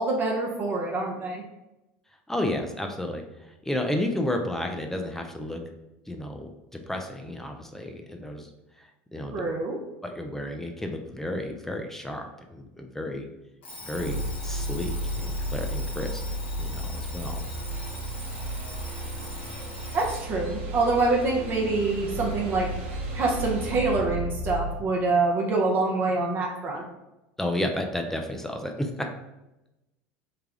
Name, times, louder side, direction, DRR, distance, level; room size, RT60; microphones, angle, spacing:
voice 1, 0.0-1.4 9.3-9.8 19.9-22.7 23.1-26.8, right 3 dB, 35° right, -1 dB, 0.7 m, -25 dB
voice 2, 2.3-5.6 6.1-8.5 9.1-9.4 10.0-13.3 13.9-16.2 16.6-17.4 27.4-28.9, left 1 dB, 5° left, 3 dB, 0.4 m, -32 dB
Alarm, 13.6-20.3, left 2 dB, 80° left, 1.0 m, -42 dB
sound 1, 13.9-24.8, right 1 dB, 85° right, 0.7 m, -33 dB
3.3 x 2.3 x 3.6 m, 0.97 s
supercardioid pair, 95°, 6 cm